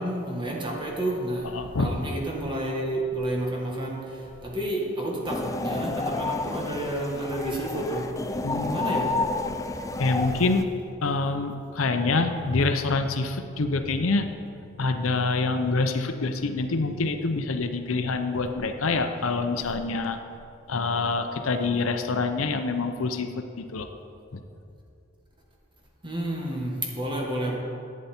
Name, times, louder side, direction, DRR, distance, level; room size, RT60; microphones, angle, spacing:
voice 1, 0.0-8.2 8.4-9.2 9.5-9.7 10.0-10.1 26.0-27.6, right 1 dB, 25° right, -1 dB, 1.5 m, -30 dB
voice 2, 1.5-1.9 8.4-8.8 10.0-10.7 11.0-14.3 14.8-20.2 20.7-23.3 23.6-23.9, left 3 dB, 80° left, 7 dB, 0.7 m, -26 dB
sound 1, 5.2-10.6, left 3 dB, 15° left, 0.4 m, -30 dB
11.5 x 8.5 x 4.4 m, 2.6 s
head